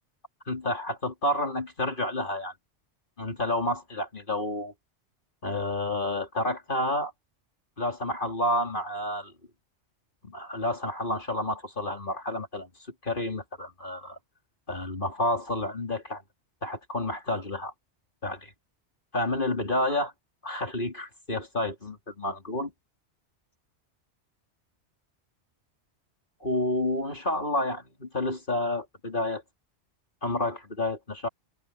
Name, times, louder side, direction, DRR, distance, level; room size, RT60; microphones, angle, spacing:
voice 1, 0.5-2.5 3.2-4.7 5.4-7.1 7.8-9.3 10.2-12.7 13.0-14.2 14.7-16.2 16.6-17.7 18.2-18.5 19.1-20.1 20.4-22.7 26.4-29.4 30.2-31.3, left 1 dB, 45° left, 3.7 m, -30 dB
omnidirectional pair, 1.2 m